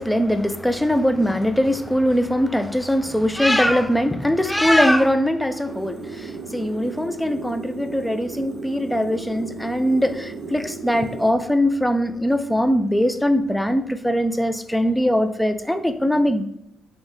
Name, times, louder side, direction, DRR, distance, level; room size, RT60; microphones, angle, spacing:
voice 1, 0.0-16.4, equal, 5° left, 9 dB, 0.3 m, -21 dB
sound 1, 5.7-11.3, right 5 dB, 90° right, 0.6 m, -35 dB
5.2 x 2.1 x 3.2 m, 0.76 s
cardioid pair, 90°, 0 cm